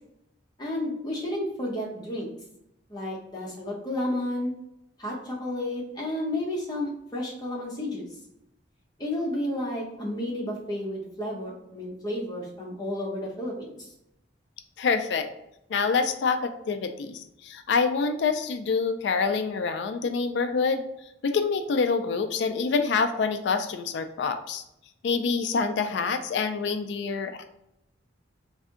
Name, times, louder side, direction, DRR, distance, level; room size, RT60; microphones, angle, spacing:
voice 1, 0.6-2.3 2.9-4.5 5.0-8.0 9.0-13.9, left 1 dB, 20° left, -3 dB, 0.9 m, -31 dB
voice 2, 14.8-15.3 15.7-20.8 21.2-24.6 25.0-27.5, left 5 dB, 70° left, 8 dB, 0.3 m, -26 dB
3.3 x 2.6 x 3.6 m, 0.84 s
head